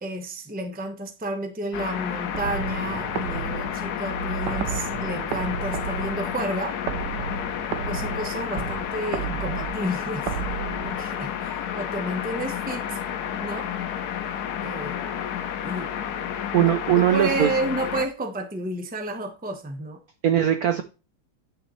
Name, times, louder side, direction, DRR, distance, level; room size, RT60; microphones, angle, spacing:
voice 1, 0.0-6.8 7.8-10.3 10.8-13.0 13.4-13.7 14.6-15.3 15.6-16.1 16.5-20.0, right 1 dB, 10° right, 6 dB, 0.4 m, -31 dB
sound 1, 1.7-18.1, left 9 dB, 65° left, 1.0 m, -31 dB
sound 2, 2.3-11.4, right 7 dB, 60° right, 1.3 m, -33 dB
voice 2, 16.5-17.5 20.2-20.8, right 11 dB, 85° right, 9 dB, 0.8 m, -20 dB
9.4 x 6.4 x 3.2 m, 0.32 s
omnidirectional pair, 2.4 m